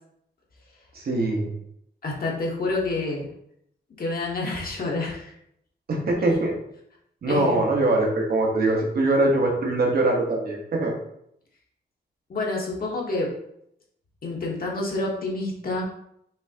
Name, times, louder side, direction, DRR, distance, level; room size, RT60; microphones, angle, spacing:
voice 1, 0.9-1.5 5.9-6.5 7.2-10.9, right 2 dB, 55° right, 0 dB, 1.1 m, -22 dB
voice 2, 2.0-3.3 4.0-5.3 7.3-7.7 12.3-13.3 14.2-15.8, left 2 dB, 55° left, -2 dB, 1.1 m, -28 dB
5.5 x 3.3 x 2.8 m, 0.73 s
wide cardioid pair, 175°, 18 cm